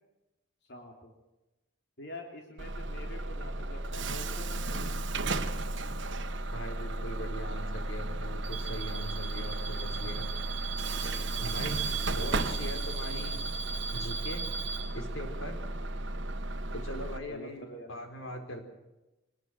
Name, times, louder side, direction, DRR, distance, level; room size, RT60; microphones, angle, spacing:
voice 1, 0.6-1.1 2.0-5.6 10.8-11.4 17.3-18.0, left 1 dB, 55° left, 1 dB, 3.4 m, -47 dB
Bus / Alarm, 2.6-17.2, right 2 dB, 65° right, 1.4 m, -34 dB
voice 2, 6.5-10.3 11.4-13.4 13.9-14.5 14.9-15.6 16.7-18.6, equal, 80° left, 5 dB, 4.5 m, -41 dB
24.5 x 20.0 x 6.3 m, 1.0 s
head